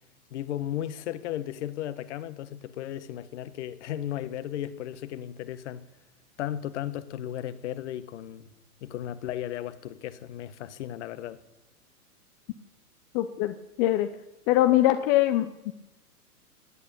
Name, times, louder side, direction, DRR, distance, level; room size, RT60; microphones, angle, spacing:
voice 1, 0.3-5.9 6.4-8.5 8.8-11.4, left 11 dB, 50° left, 1.5 m, -35 dB
voice 2, 13.1-14.1 14.5-15.7, left 14 dB, 30° left, 0.9 m, -23 dB
18.5 x 8.9 x 8.6 m
hypercardioid pair, 120°, 46 cm